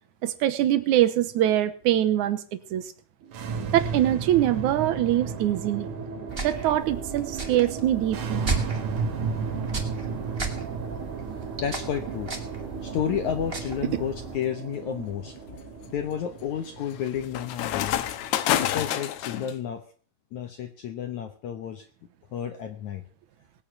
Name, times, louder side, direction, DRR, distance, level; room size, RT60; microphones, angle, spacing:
voice 1, 0.2-2.4 2.7-2.9 3.7-5.9 6.4-8.5 13.9-14.0, right 12 dB, 75° right, 11 dB, 1.8 m, -23 dB
sound 1, 3.2-18.5, right 5 dB, 60° right, 2.8 m, -34 dB
sound 2, 6.3-14.4, right 3 dB, 20° right, 1.9 m, -35 dB
voice 2, 11.6-12.3 12.8-15.4 15.9-18.1 18.6-19.8 20.3-21.9 22.3-23.0, left 9 dB, 70° left, 7 dB, 1.9 m, -31 dB
sound 3, 14.0-14.3 14.9-19.5, left 12 dB, 90° left, 3.1 m, -29 dB
20.0 x 9.2 x 6.2 m, 0.41 s
omnidirectional pair, 4.6 m